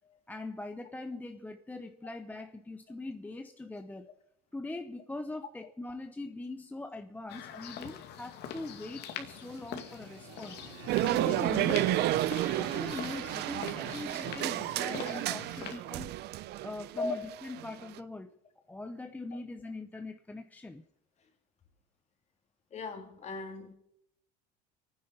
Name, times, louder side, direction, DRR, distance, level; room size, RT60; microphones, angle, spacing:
voice 1, 0.3-4.1 4.5-10.6 11.0-15.4 15.7-16.1 16.6-18.3 18.7-20.8, left 2 dB, 5° left, 0.7 m, -42 dB
sound 1, 7.3-15.8, left 9 dB, 55° left, 2.3 m, -44 dB
Motorcycle, 9.1-15.4, right 6 dB, 75° right, 3.5 m, -46 dB
sound 2, 10.9-18.0, right 15 dB, 50° right, 0.6 m, -31 dB
voice 2, 22.7-23.8, left 3 dB, 35° left, 3.2 m, -37 dB
25.0 x 9.7 x 5.4 m
supercardioid pair, 125°, 21 cm